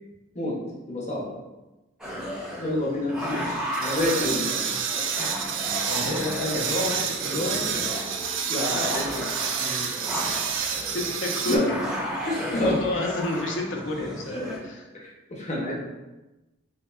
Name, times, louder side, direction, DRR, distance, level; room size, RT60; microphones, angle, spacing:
voice 1, 0.9-1.3 2.6-4.5 4.9-5.3 6.0-6.1 8.5-9.2 11.4-11.7 12.2-13.0 14.3-14.6 14.9-15.7, left 1 dB, 40° left, -2 dB, 0.7 m, -28 dB
sound 1, 2.0-14.6, equal, 5° right, 0.5 m, -34 dB
sound 2, 3.2-11.6, right 7 dB, 75° right, 0.3 m, -29 dB
voice 2, 5.8-7.8 10.1-10.2 10.9-11.8 12.1-12.3 12.6-14.8, left 2 dB, 75° left, 1 dB, 0.6 m, -30 dB
3.5 x 2.8 x 2.3 m, 1.1 s
head